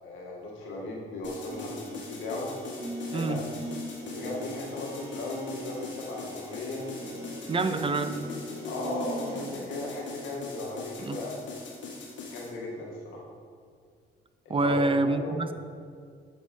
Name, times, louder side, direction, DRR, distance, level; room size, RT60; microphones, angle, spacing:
voice 1, 0.0-2.5 3.1-3.4 4.1-6.8 7.5-7.8 8.1-8.2 8.6-11.6 12.3-13.3 14.5-15.4, left 2 dB, 90° left, -2 dB, 1.8 m, -37 dB
sound 1, 1.2-12.5, left 4 dB, 70° left, 1.7 m, -42 dB
sound 2, 1.5-9.5, right 1 dB, 65° right, 2.5 m, -41 dB
voice 2, 7.5-8.1 11.0-11.2 14.5-15.5, right 2 dB, 25° right, 10 dB, 0.6 m, -26 dB
8.7 x 5.4 x 5.4 m, 2.1 s
cardioid pair, 90°, 20 cm